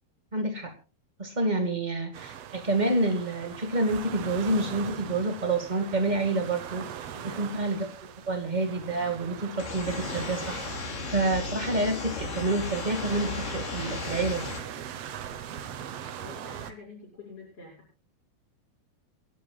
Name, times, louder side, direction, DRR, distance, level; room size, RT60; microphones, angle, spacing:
voice 1, 0.3-0.7 1.2-6.8 7.2-14.5, right 2 dB, 35° right, 4 dB, 0.7 m, -28 dB
sound 1, 2.1-16.7, right 9 dB, 85° right, 1.4 m, -41 dB
voice 2, 7.1-7.5 14.4-14.8 15.9-17.7, left 3 dB, 40° left, -5 dB, 6.6 m, -48 dB
sun moon n stars, 9.6-14.6, left 5 dB, 85° left, 4.3 m, -35 dB
28.5 x 11.5 x 2.4 m, 0.32 s
omnidirectional pair, 4.4 m